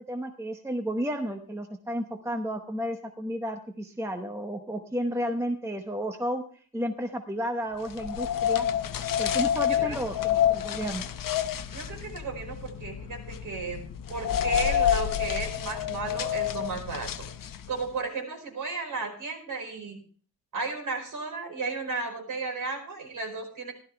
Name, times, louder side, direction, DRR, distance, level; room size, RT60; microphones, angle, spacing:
voice 1, 0.0-8.7 9.2-11.1, equal, 5° right, 4 dB, 0.9 m, -32 dB
sound 1, 7.9-17.8, left 10 dB, 55° left, 0.8 m, -28 dB
voice 2, 9.7-10.5 11.7-13.8 14.1-17.3 17.7-20.0 20.5-23.7, right 4 dB, 50° right, 2 dB, 4.8 m, -34 dB
15.5 x 12.5 x 3.4 m, 0.43 s
wide cardioid pair, 180°, 39 cm